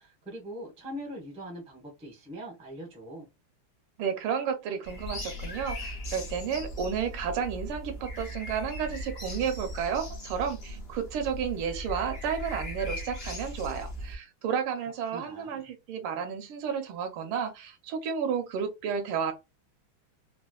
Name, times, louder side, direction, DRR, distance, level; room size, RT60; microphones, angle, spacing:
voice 1, 0.0-3.3 14.5-14.8 15.1-15.7, equal, 5° right, 0.5 m, -42 dB
voice 2, 4.0-19.3, right 7 dB, 80° right, 1.6 m, -32 dB
sound 1, 4.8-14.1, left 1 dB, 55° left, 0.7 m, -38 dB
4.2 x 2.3 x 2.3 m
omnidirectional pair, 2.4 m